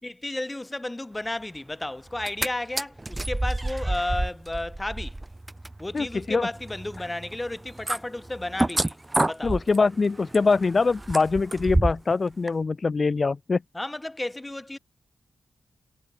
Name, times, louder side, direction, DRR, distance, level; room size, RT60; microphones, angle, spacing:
voice 1, 0.0-5.2 5.8-9.0 9.2-9.6 13.7-14.8, left 1 dB, 20° left, 7.8 m, -33 dB
sound 1, 2.1-2.5 2.8-12.1 12.5-12.6, right 2 dB, 20° right, 0.8 m, -29 dB
voice 2, 5.9-6.5 9.4-13.6, left 4 dB, 45° left, 1.0 m, -23 dB
cardioid pair, 55°, 0 cm